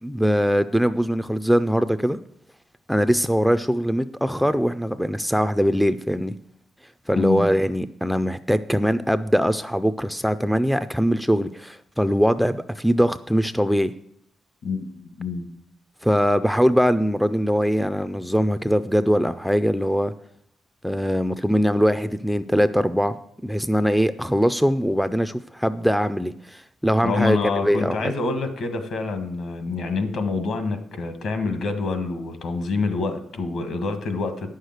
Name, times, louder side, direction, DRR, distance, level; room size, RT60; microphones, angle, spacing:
voice 1, 0.0-2.2 2.9-6.3 7.1-13.9 16.0-20.1 20.8-23.2 23.4-28.1, equal, ahead, 11 dB, 0.3 m, -22 dB
voice 2, 7.2-7.5 14.6-15.5 27.0-34.6, left 4 dB, 60° left, 8 dB, 1.5 m, -27 dB
9.7 x 6.5 x 7.8 m, 0.75 s
wide cardioid pair, 155°, 0 cm